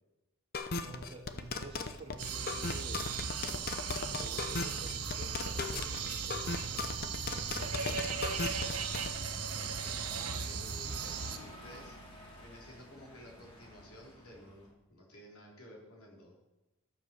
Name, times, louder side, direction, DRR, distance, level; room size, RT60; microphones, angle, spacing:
sound 1, 0.5-9.1, left 4 dB, 45° left, 0.8 m, -37 dB
voice 1, 0.8-3.1 4.1-8.1, right 2 dB, 25° right, 0 dB, 2.1 m, -50 dB
sound 2, 2.2-11.4, right 6 dB, 85° right, 1.1 m, -37 dB
sound 3, 7.5-14.7, left 1 dB, 25° left, 2.6 m, -52 dB
voice 2, 9.5-16.3, equal, 75° left, -1 dB, 3.6 m, -53 dB
13.0 x 7.1 x 6.9 m, 0.99 s
head